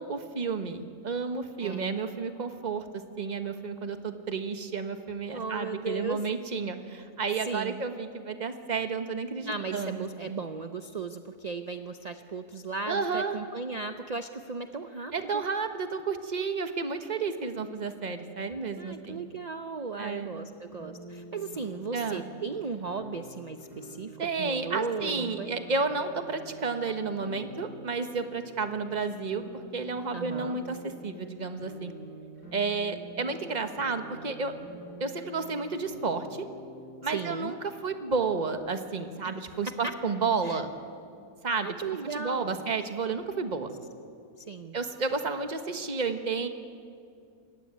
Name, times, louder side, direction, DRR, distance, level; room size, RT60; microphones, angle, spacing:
voice 1, 0.0-2.9 3.2-10.3 12.9-13.4 15.1-19.3 20.0-20.4 21.9-22.2 24.2-29.4 29.7-31.9 32.5-34.5 35.0-36.4 37.0-37.6 37.8-40.7 41.4-41.7 42.1-43.7 44.7-46.5, right 4 dB, 30° right, 7 dB, 1.4 m, -31 dB
voice 2, 1.6-1.9 5.3-6.2 7.4-7.8 9.5-15.4 18.8-25.5 30.1-30.6 37.0-37.6 39.2-39.9 40.4-40.6 41.6-42.7 44.4-44.8, right 4 dB, 45° right, 8 dB, 0.5 m, -36 dB
sound 1, 20.7-38.5, right 1 dB, 75° left, 6.0 m, -47 dB
27.0 x 15.5 x 9.7 m, 2.4 s
omnidirectional pair, 1.7 m